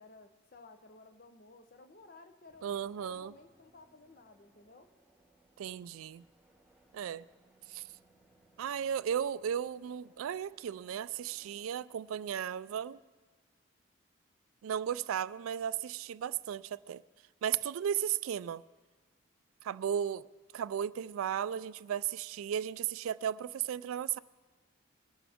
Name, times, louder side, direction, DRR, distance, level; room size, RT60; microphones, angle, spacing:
voice 1, 0.0-4.9, left 3 dB, 45° left, 0.8 m, -56 dB
sound 1, 2.5-11.7, right 2 dB, 5° right, 1.4 m, -67 dB
voice 2, 2.6-3.3 5.6-6.2 6.9-7.2 7.7-7.8 8.6-13.0 14.6-17.0 17.4-18.6 19.6-20.2 20.5-24.2, right 9 dB, 85° right, 0.3 m, -35 dB
21.5 x 12.0 x 3.6 m
head